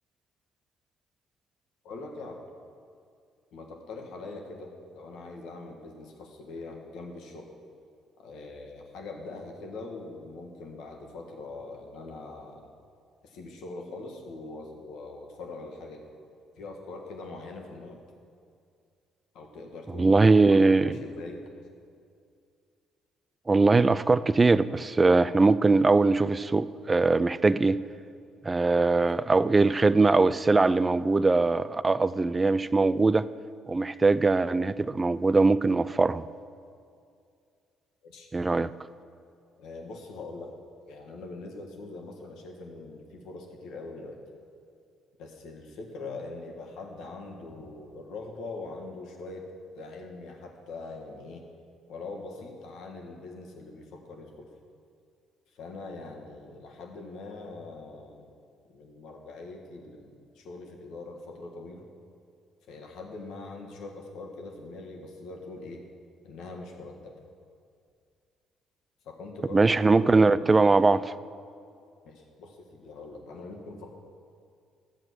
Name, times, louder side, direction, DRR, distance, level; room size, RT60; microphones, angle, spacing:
voice 1, 1.8-2.4 3.5-7.5 8.2-12.7 13.2-16.1 16.6-18.0 19.3-21.4 28.7-28.9 38.0-38.3 39.6-40.6 40.9-44.2 45.2-49.5 49.7-51.4 51.9-54.5 55.5-58.3 58.7-61.8 62.7-65.8 66.2-67.2 69.0-70.6 72.0-74.0, left 3 dB, 65° left, 2 dB, 1.6 m, -42 dB
voice 2, 20.0-20.9 23.5-27.8 28.4-33.3 33.7-36.2 38.3-38.7 69.5-71.2, right 3 dB, 25° right, 16 dB, 0.4 m, -21 dB
12.0 x 7.7 x 6.3 m, 2.3 s
hypercardioid pair, 50°, 0 cm